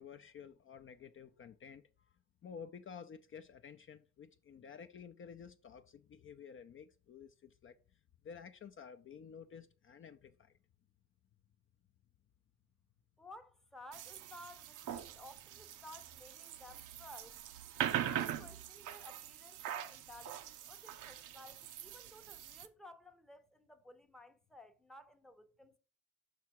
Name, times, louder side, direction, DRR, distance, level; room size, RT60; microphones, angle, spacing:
voice 1, 0.0-2.1 2.4-10.5, left 7 dB, 45° left, 0.5 m, -52 dB
voice 2, 13.2-17.4 18.0-25.8, left 1 dB, ahead, 0.7 m, -56 dB
sound 1, 13.9-22.7, right 10 dB, 90° right, 0.7 m, -42 dB
5.7 x 4.8 x 4.6 m
cardioid pair, 90°, 30 cm